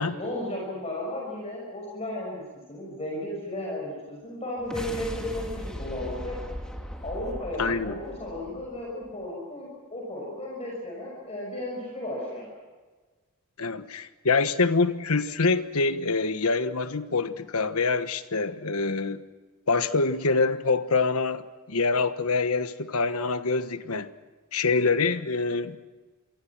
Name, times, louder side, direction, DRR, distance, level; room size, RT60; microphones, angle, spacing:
voice 1, 0.0-2.4 2.7-6.4 7.0-12.5, left 1 dB, 30° left, 6.1 m, -34 dB
sound 1, 4.6-9.1, equal, 5° left, 3.0 m, -38 dB
voice 2, 7.6-8.0 13.6-19.2 19.7-24.1 24.5-25.8, left 4 dB, 75° left, 1.3 m, -25 dB
28.0 x 23.5 x 6.0 m
head